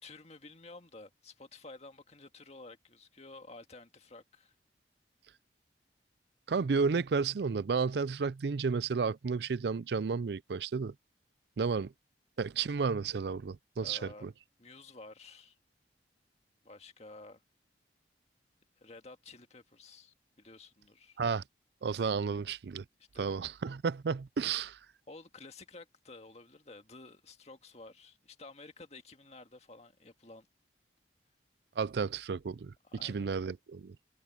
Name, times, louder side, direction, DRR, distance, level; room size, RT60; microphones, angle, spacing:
voice 1, 0.0-4.5 13.8-14.3 14.6-15.6 16.6-17.4 18.8-21.2 23.1-23.3 25.1-30.5 32.8-33.3, left 3 dB, 40° left, 1.9 m, -52 dB
voice 2, 6.5-10.9 11.6-11.9 12.4-14.3 21.2-21.4 21.8-22.8 23.2-24.8 31.8-32.7 33.0-34.0, right 5 dB, 70° right, 0.4 m, -32 dB
head